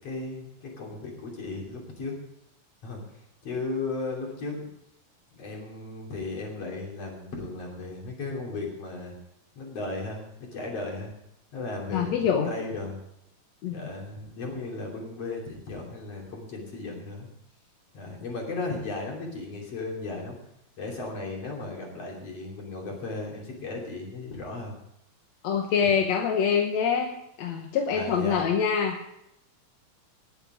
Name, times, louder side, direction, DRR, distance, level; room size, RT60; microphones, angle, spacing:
voice 1, 0.0-2.2 2.8-4.7 5.4-9.1 9.6-10.3 10.5-11.1 11.5-13.0 13.7-17.3 17.9-20.4 20.8-24.8 25.8-25.9 27.9-28.4, left 3 dB, 50° left, -1 dB, 3.9 m, -35 dB
voice 2, 11.9-12.5 13.6-13.9 25.4-27.1 27.4-29.0, left 7 dB, 65° left, 3 dB, 1.9 m, -25 dB
19.5 x 7.3 x 5.1 m, 0.79 s
omnidirectional pair, 3.8 m